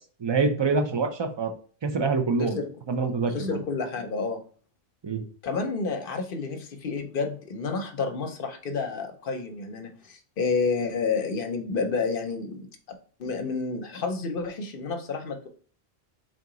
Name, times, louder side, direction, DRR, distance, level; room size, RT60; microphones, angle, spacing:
voice 1, 0.2-1.5 1.8-2.6 2.9-3.6 5.0-5.2, right 4 dB, 40° right, 5 dB, 0.4 m, -25 dB
voice 2, 3.3-4.4 5.4-12.7 13.2-15.5, left 4 dB, 60° left, 6 dB, 0.8 m, -30 dB
3.8 x 2.8 x 3.7 m, 0.44 s
omnidirectional pair, 1.1 m